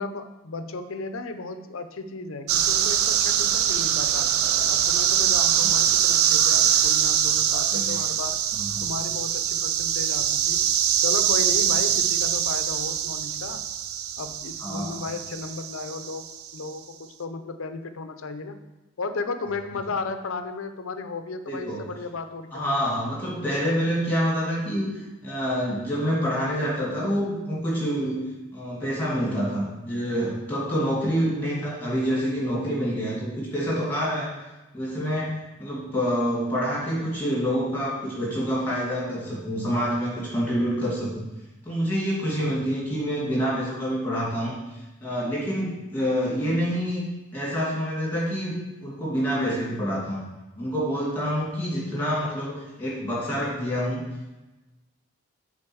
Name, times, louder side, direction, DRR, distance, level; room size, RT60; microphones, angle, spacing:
voice 1, 0.0-4.3 4.7-8.4 8.8-10.7 11.0-13.6 14.2-18.6 19.0-22.9, left 3 dB, 80° left, 9 dB, 0.6 m, -34 dB
sound 1, 2.5-16.5, right 9 dB, 90° right, 0.4 m, -23 dB
voice 2, 7.5-8.0 8.5-8.8 14.6-15.0 21.5-21.9 22.5-28.3 28.5-34.3 34.7-41.1 41.6-47.0 47.3-48.6 48.8-50.2 50.6-54.0, equal, 10° left, -6 dB, 2.5 m, -27 dB
7.8 x 4.0 x 6.2 m, 1.1 s
head